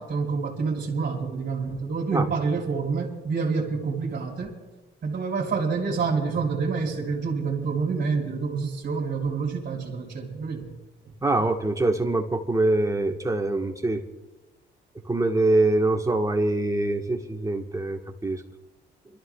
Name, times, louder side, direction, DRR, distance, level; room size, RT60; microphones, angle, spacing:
voice 1, 0.0-4.5 5.0-10.7 11.0-11.1, right 4 dB, 50° right, -3 dB, 3.1 m, -27 dB
voice 2, 11.2-14.0 15.0-18.4, right 2 dB, 15° right, 3 dB, 1.4 m, -24 dB
29.5 x 13.0 x 2.4 m, 1.1 s
cardioid pair, 90°, 20 cm